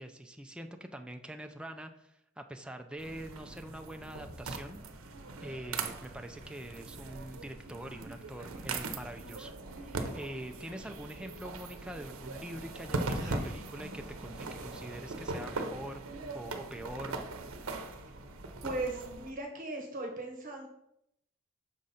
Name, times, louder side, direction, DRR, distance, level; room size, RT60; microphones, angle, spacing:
voice 1, 0.0-4.8 5.4-17.2, right 1 dB, 5° right, 5 dB, 0.4 m, -44 dB
sound 1, 3.0-19.3, right 3 dB, 85° right, 0.7 m, -40 dB
voice 2, 18.6-20.7, right 2 dB, 40° right, 2 dB, 1.0 m, -37 dB
6.2 x 3.9 x 5.7 m, 0.80 s
head